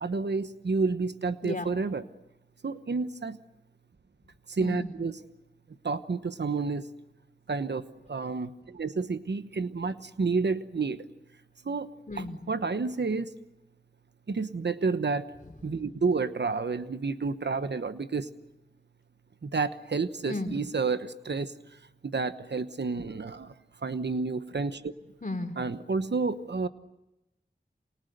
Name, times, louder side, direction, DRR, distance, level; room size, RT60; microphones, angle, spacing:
voice 1, 0.0-2.0 2.6-3.4 4.5-5.2 5.8-6.9 7.5-11.0 11.6-13.3 14.3-15.3 15.6-18.3 19.4-21.5 22.0-23.5 23.8-24.9 25.6-26.7, right 4 dB, 85° right, 11 dB, 1.1 m, -30 dB
voice 2, 4.6-4.9 12.1-12.4 20.3-20.5 25.2-25.6, left 2 dB, 50° left, 6 dB, 3.4 m, -34 dB
29.5 x 27.5 x 6.7 m, 0.95 s
wide cardioid pair, 50°, 17 cm